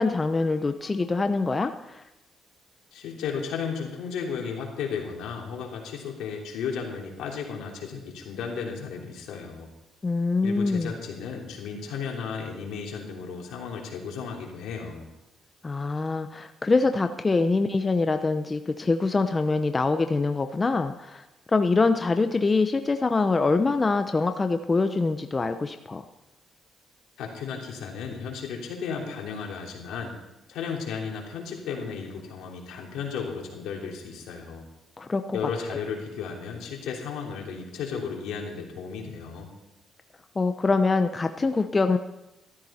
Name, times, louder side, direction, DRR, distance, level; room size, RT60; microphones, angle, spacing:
voice 1, 0.0-1.7 10.0-10.9 15.6-21.2 21.5-26.0 35.0-35.4 40.4-42.0, left 3 dB, 25° left, 8 dB, 0.8 m, -24 dB
voice 2, 2.9-9.7 10.4-15.1 27.2-30.1 30.5-34.7 35.3-39.5, left 6 dB, 85° left, -1 dB, 3.2 m, -34 dB
13.5 x 13.5 x 4.3 m, 0.92 s
cardioid pair, 90°, 0 cm